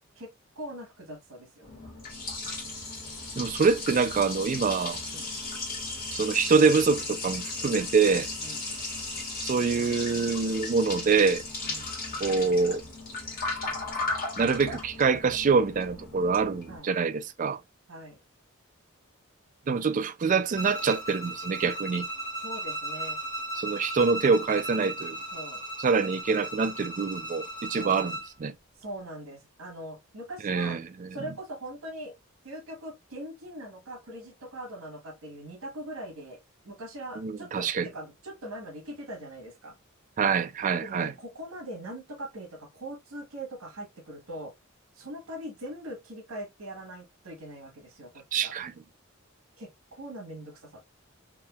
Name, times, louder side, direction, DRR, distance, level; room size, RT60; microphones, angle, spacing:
voice 1, 0.6-1.9 5.1-5.3 8.4-8.7 11.6-11.9 16.7-16.9 17.9-18.2 22.4-23.2 25.3-25.6 27.7-28.1 28.8-30.8 31.1-32.2 32.4-39.8 40.8-44.5 44.9-48.5 49.6-50.8, right 1 dB, 80° right, 1.3 m, -41 dB
Liquid, 1.6-16.8, left 3 dB, 45° left, 1.5 m, -36 dB
voice 2, 3.4-5.0 6.1-8.3 9.4-11.4 12.2-12.8 14.4-17.6 19.7-22.1 23.6-25.2 25.8-28.1 28.4-28.5 30.4-31.1 37.2-37.9 40.2-41.1 48.3-48.7, right 5 dB, 35° right, 0.3 m, -25 dB
Bowed string instrument, 20.5-28.3, right 1 dB, 20° left, 1.1 m, -36 dB
3.6 x 2.7 x 2.2 m
head